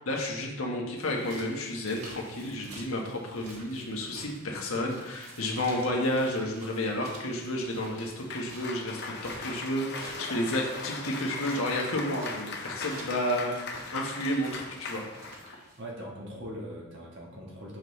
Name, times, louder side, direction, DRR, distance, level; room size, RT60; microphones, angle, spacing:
voice 1, 0.0-15.0, left 1 dB, 75° left, 0 dB, 1.3 m, -31 dB
sound 1, 1.0-15.8, right 2 dB, 90° right, 1.3 m, -50 dB
Cheering / Applause, 7.9-15.6, left 3 dB, 50° left, 0.7 m, -39 dB
voice 2, 15.8-17.8, equal, 55° right, -2 dB, 1.5 m, -41 dB
6.3 x 5.5 x 3.2 m, 1.0 s
head